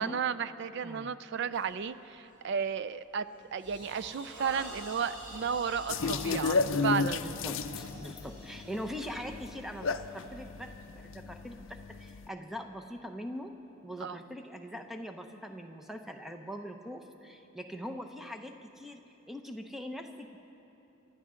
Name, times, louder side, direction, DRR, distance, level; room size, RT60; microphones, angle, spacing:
voice 1, 0.0-7.2 14.0-14.2, right 6 dB, 50° right, 13 dB, 0.3 m, -33 dB
sound 1, 1.5-1.8 2.3-2.6 3.0-11.1, right 1 dB, 20° right, 3.0 m, -48 dB
sound 2, 5.9-12.3, left 4 dB, 60° left, 0.5 m, -34 dB
voice 2, 7.2-13.5 13.8-19.0 19.3-20.4, equal, ahead, 5 dB, 0.7 m, -42 dB
28.5 x 12.5 x 3.8 m, 3.0 s
head